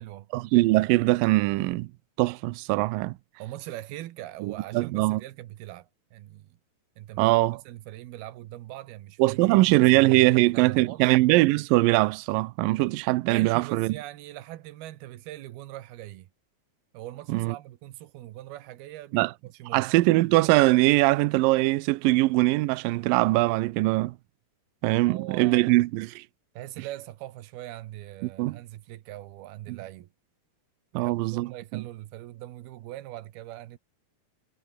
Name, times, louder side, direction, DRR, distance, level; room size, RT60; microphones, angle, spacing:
voice 1, 0.3-1.9 2.2-3.2 4.4-5.2 7.2-7.6 9.2-13.9 17.3-17.5 19.1-19.3 19.7-24.2 24.8-26.2 28.4-28.6 29.7-29.8 30.9-31.8, right 20 dB, 90° right, 2.0 m, -22 dB
voice 2, 3.4-6.6 7.0-7.3 7.7-11.1 13.2-16.3 16.9-20.1 25.1-25.8 26.5-30.1 30.9-33.8, right 15 dB, 70° right, 3.0 m, -41 dB
omnidirectional pair, 4.8 m